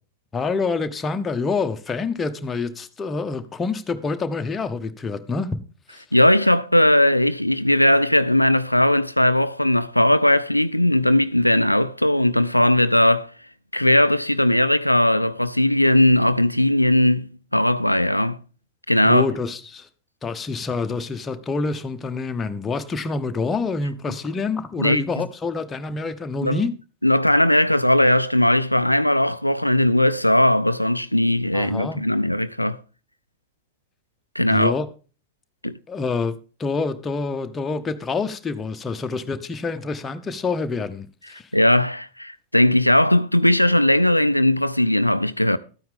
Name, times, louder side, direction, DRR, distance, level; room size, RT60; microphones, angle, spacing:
voice 1, 0.3-5.6 5.9-6.0 19.0-19.9 20.2-26.7 31.5-32.0 34.5-34.9 35.9-41.5, left 4 dB, 15° left, 1.1 m, -27 dB
voice 2, 6.1-13.3 13.7-18.4 18.9-19.3 24.8-25.0 26.4-26.6 27.0-32.8 34.4-34.7 35.6-35.8 41.5-45.6, left 1 dB, 90° left, 0.4 m, -18 dB
13.0 x 9.2 x 3.6 m
figure-of-eight pair, 90°, 0 cm